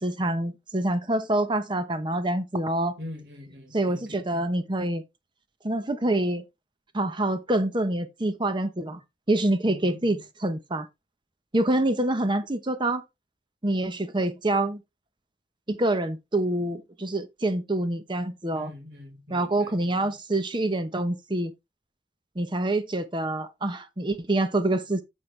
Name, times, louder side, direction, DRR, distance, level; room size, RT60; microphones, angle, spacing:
voice 1, 0.0-3.0 3.7-5.0 5.6-6.4 6.9-9.0 9.3-10.9 11.5-13.0 13.6-14.8 15.7-18.7 19.3-21.5 22.4-25.0, right 1 dB, 25° right, 0.9 m, -26 dB
voice 2, 3.0-4.4 9.6-10.2 18.5-20.1, left 1 dB, 75° right, 4.4 m, -43 dB
9.3 x 6.3 x 3.3 m
head